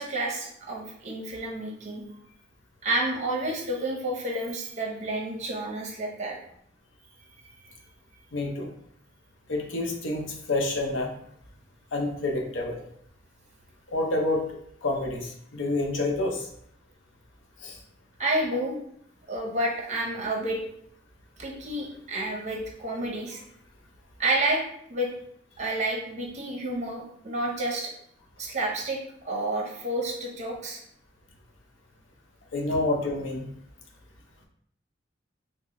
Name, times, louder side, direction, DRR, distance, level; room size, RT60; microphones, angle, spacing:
voice 1, 0.0-2.0 2.8-6.4 18.2-18.8 19.3-20.6 21.4-23.4 24.2-24.6 24.9-25.1 25.6-27.9 28.4-29.0 29.2-30.8, right 1 dB, 40° right, -1 dB, 0.7 m, -30 dB
voice 2, 8.3-8.7 9.5-11.1 11.9-12.8 13.9-14.4 14.8-16.5 17.6-17.8 32.5-33.5, left 2 dB, 75° left, 1 dB, 0.6 m, -28 dB
3.7 x 2.0 x 3.0 m, 0.69 s
head